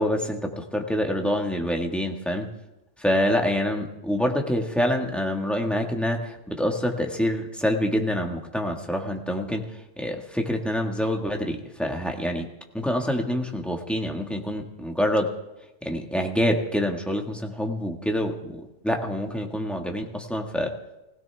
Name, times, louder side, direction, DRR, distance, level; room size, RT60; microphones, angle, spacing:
voice 1, 0.0-2.5 3.0-9.7 10.0-12.5 12.7-15.3 15.8-20.7, equal, ahead, 2 dB, 1.6 m, -26 dB
21.5 x 16.5 x 3.5 m, 0.96 s
omnidirectional pair, 1.2 m